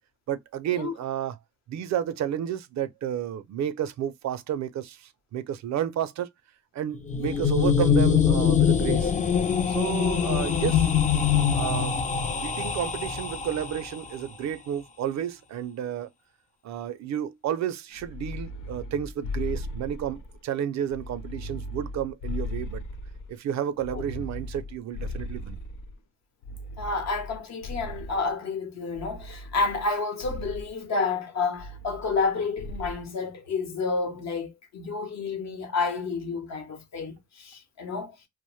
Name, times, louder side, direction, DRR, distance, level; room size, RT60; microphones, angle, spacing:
voice 1, 0.3-1.4 1.7-6.3 6.7-9.1 9.7-10.9 11.5-12.0 12.3-16.1 16.6-22.8 23.3-25.6, right 10 dB, 65° right, 0.5 m, -31 dB
sound 1, 6.9-13.9, left 7 dB, 25° left, 0.4 m, -23 dB
sound 2, 18.0-20.4 20.9-23.3 23.8-26.0 26.4-28.3 28.9-29.9 30.2-30.7 31.6-32.3 32.6-33.0, left 2 dB, 80° left, 0.5 m, -37 dB
voice 2, 26.8-38.2, left 4 dB, 60° left, 0.9 m, -30 dB
2.5 x 2.0 x 3.0 m
cardioid pair, 85°, 30 cm